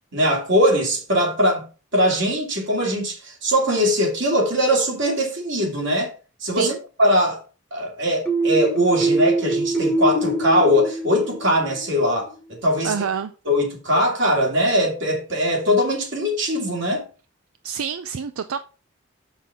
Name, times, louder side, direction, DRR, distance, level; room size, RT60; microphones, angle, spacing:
voice 1, 0.1-1.6 1.9-6.1 6.4-6.7 7.0-7.4 7.7-12.9 13.4-17.1, equal, 60° right, 2.6 m, -21 dB
sound 1, 8.3-11.9, right 2 dB, 5° left, 1.1 m, -23 dB
voice 2, 12.8-13.3 17.6-18.6, right 7 dB, 85° right, 0.4 m, -27 dB
7.0 x 6.0 x 3.6 m
head